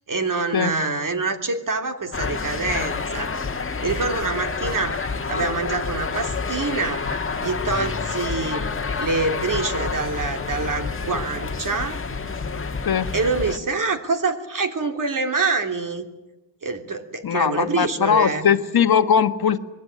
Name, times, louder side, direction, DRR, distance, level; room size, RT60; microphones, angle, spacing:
voice 1, 0.1-3.3 3.8-5.0 5.3-7.0 7.4-8.7 9.0-12.0 13.1-16.1 16.6-18.5, right 3 dB, 45° right, 5 dB, 3.1 m, -25 dB
sound 1, 2.1-13.6, left 4 dB, 25° left, 1.6 m, -28 dB
voice 2, 17.2-19.6, left 7 dB, 50° left, 9 dB, 1.5 m, -19 dB
26.0 x 21.0 x 9.6 m, 1.0 s
wide cardioid pair, 130°, 46 cm